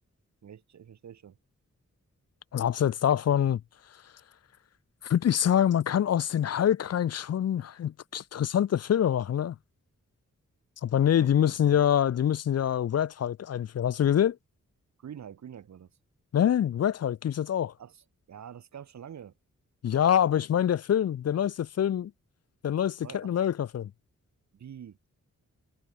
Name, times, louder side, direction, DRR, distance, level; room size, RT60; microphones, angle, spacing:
voice 1, 0.4-1.4 11.1-11.8 15.0-15.9 17.8-19.3 23.0-23.4 24.5-25.0, right 8 dB, 65° right, 0.8 m, -46 dB
voice 2, 2.5-3.6 3.9-4.1 5.0-9.6 10.8-14.4 16.3-17.7 19.8-22.1 22.6-23.9, left 10 dB, 55° left, 0.4 m, -25 dB
wide cardioid pair, 175°, 30 cm